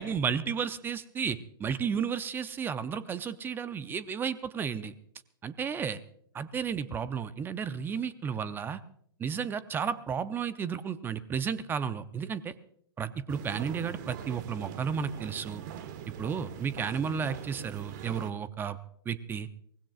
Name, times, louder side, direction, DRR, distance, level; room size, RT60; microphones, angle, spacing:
voice 1, 0.0-4.9 5.4-6.0 6.3-8.8 9.2-12.5 13.0-15.6 16.2-18.8 19.1-19.5, right 7 dB, 15° right, 15 dB, 0.6 m, -33 dB
sound 1, 13.3-18.3, right 9 dB, 45° right, 1.5 m, -42 dB
23.5 x 19.5 x 2.4 m, 0.68 s
figure-of-eight pair, 115°, 13 cm